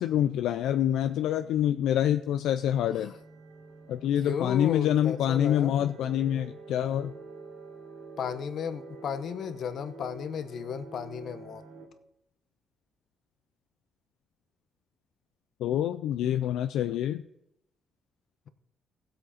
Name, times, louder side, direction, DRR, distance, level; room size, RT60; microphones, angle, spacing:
voice 1, 0.0-3.1 3.9-7.1 15.6-17.2, left 11 dB, 85° left, 9 dB, 0.4 m, -26 dB
sound 1, 2.3-11.8, right 4 dB, 75° right, 3.4 m, -47 dB
voice 2, 4.2-5.9 8.2-11.6, left 7 dB, 65° left, 11 dB, 0.9 m, -34 dB
16.0 x 7.8 x 4.2 m, 0.81 s
cardioid pair, 90°, 0 cm